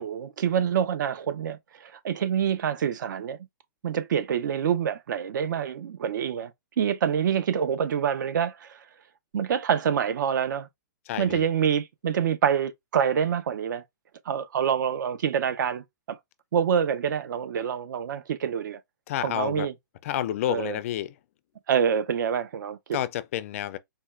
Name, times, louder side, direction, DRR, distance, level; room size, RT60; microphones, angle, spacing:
voice 1, 0.0-3.4 3.8-6.5 6.8-8.8 9.3-10.7 11.2-13.8 14.3-16.2 16.5-18.8 19.2-19.7 20.5-20.8 21.7-23.0, right 8 dB, 65° right, 0.6 m, -26 dB
voice 2, 11.1-11.5 19.1-19.7 20.0-21.2 22.9-23.8, left 12 dB, 45° left, 0.4 m, -29 dB
4.3 x 2.2 x 2.4 m
hypercardioid pair, 150°, 11 cm